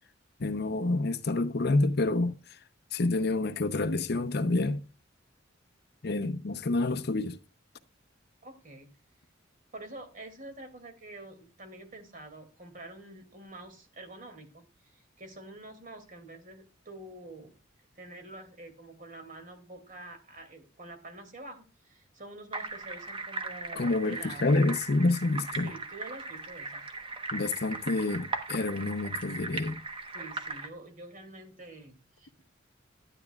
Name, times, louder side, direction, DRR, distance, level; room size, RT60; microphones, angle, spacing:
voice 1, 0.4-2.3 2.9-4.8 6.0-7.4 23.8-25.7 27.3-29.8, left 2 dB, 55° left, 0.7 m, -28 dB
voice 2, 8.4-8.9 9.7-17.5 18.0-24.5 25.6-26.9 30.1-32.4, right 2 dB, 45° right, 2.3 m, -47 dB
sound 1, 22.5-30.7, right 3 dB, 30° right, 1.0 m, -38 dB
12.0 x 9.8 x 2.3 m
head